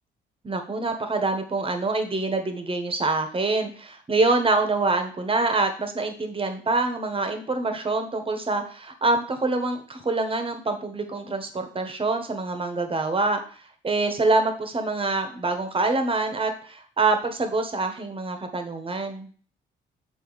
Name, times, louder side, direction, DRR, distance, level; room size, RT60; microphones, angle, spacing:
voice 1, 0.4-13.4 13.8-19.3, right 3 dB, 25° right, 6 dB, 1.3 m, -25 dB
7.8 x 4.0 x 4.1 m, 0.43 s
cardioid pair, 90°, 20 cm